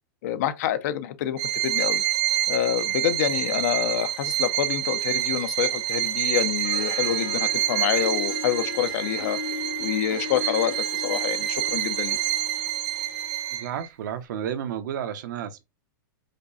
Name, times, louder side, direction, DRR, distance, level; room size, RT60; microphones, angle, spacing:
voice 1, 0.2-2.0 2.5-9.4 9.8-12.2, left 11 dB, 50° left, 0.7 m, -27 dB
Bowed string instrument, 1.4-13.9, right 14 dB, 35° right, 0.6 m, -27 dB
Harp, 6.4-13.5, left 6 dB, 80° left, 2.2 m, -38 dB
voice 2, 13.5-15.6, right 9 dB, 65° right, 0.9 m, -32 dB
5.2 x 2.2 x 4.1 m
supercardioid pair, 165°, 11 cm